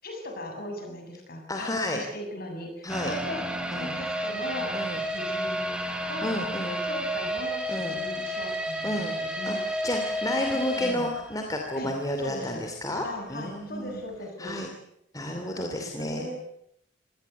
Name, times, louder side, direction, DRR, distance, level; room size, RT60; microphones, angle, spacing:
voice 1, 0.0-3.4 3.7-4.7 5.1-5.7 6.1-9.6 10.5-11.1 11.8-11.9 12.2-12.6 13.0-14.5 15.3-16.5, left 1 dB, 50° left, 3 dB, 7.5 m, -38 dB
voice 2, 1.5-2.0 2.8-3.1 3.7-3.9 4.7-5.0 6.2-6.7 7.7-8.0 8.8-9.1 9.5-14.0 14.4-14.7 15.1-16.3, left 1 dB, 20° left, 3 dB, 2.8 m, -31 dB
sound 1, 2.9-11.9 12.2-12.3 12.8-12.9, equal, 5° right, 3.0 m, -31 dB
26.0 x 18.5 x 8.2 m, 0.75 s
head